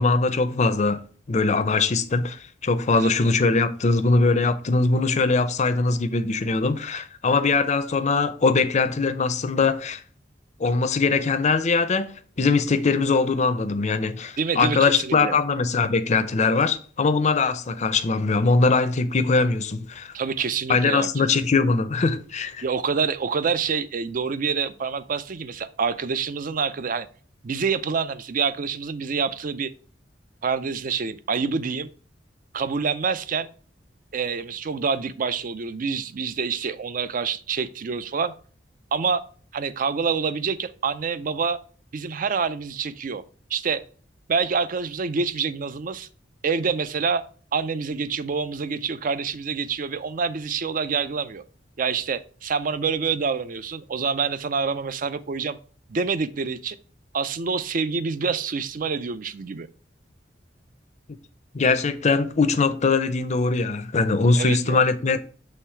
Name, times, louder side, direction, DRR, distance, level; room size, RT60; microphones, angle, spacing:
voice 1, 0.0-10.0 10.6-20.1 20.7-22.6 61.5-65.2, left 4 dB, 40° left, 0.5 m, -21 dB
voice 2, 14.4-15.4 20.1-21.2 22.6-27.1 27.4-29.7 30.4-31.9 32.5-33.5 34.1-38.3 38.9-39.2 39.5-41.6 41.9-43.2 43.5-43.8 44.3-46.1 46.4-47.2 47.5-51.4 51.8-55.6 55.9-56.8 57.1-59.7 64.4-64.8, right 5 dB, 45° right, 0.5 m, -27 dB
6.5 x 3.3 x 4.4 m
head